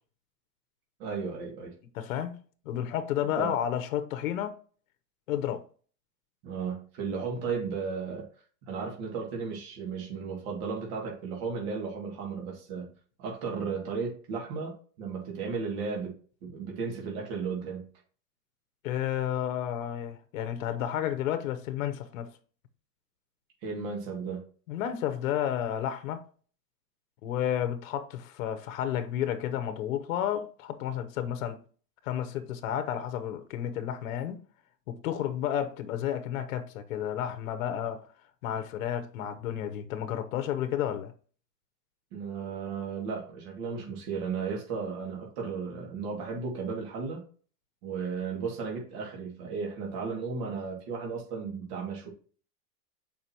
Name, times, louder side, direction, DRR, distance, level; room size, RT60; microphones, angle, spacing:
voice 1, 1.0-1.7 3.4-3.5 6.4-8.3 8.7-12.9 13.2-14.7 15.0-16.1 16.4-17.9 23.6-24.4 42.1-47.2 47.8-52.1, right 5 dB, 45° right, 2.4 m, -34 dB
voice 2, 1.9-2.4 2.7-4.6 5.3-5.6 18.8-22.3 24.7-26.2 27.2-31.6 32.0-34.4 34.9-38.1 38.4-41.1, left 10 dB, 55° left, 1.0 m, -31 dB
6.7 x 5.3 x 2.9 m
supercardioid pair, 155°, 49 cm